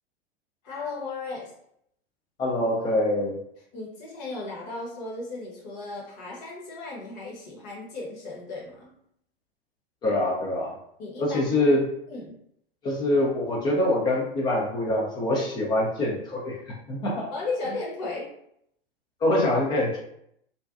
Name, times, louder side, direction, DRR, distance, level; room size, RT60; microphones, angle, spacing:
voice 1, 0.6-1.5 3.7-8.9 11.0-11.7 12.1-12.3 17.3-18.3, left 3 dB, 45° left, -3 dB, 0.9 m, -35 dB
voice 2, 2.4-3.4 10.0-10.8 11.2-11.9 12.8-17.3 19.2-20.0, left 1 dB, 15° left, -2 dB, 0.3 m, -24 dB
2.5 x 2.2 x 2.4 m, 0.73 s
figure-of-eight pair, 95°, 30 cm